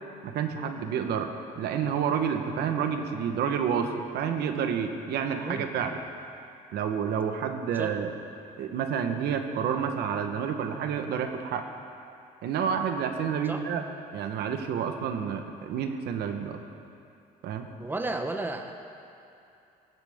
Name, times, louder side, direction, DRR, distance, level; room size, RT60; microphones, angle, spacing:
voice 1, 0.2-6.0 6.7-8.1 8.6-11.7 12.4-13.8 14.1-16.6 17.4-17.7, right 7 dB, 75° right, 6 dB, 1.2 m, -29 dB
voice 2, 17.8-18.7, right 2 dB, 10° right, 5 dB, 0.9 m, -33 dB
16.5 x 16.5 x 3.7 m, 2.6 s
cardioid pair, 110°, 17 cm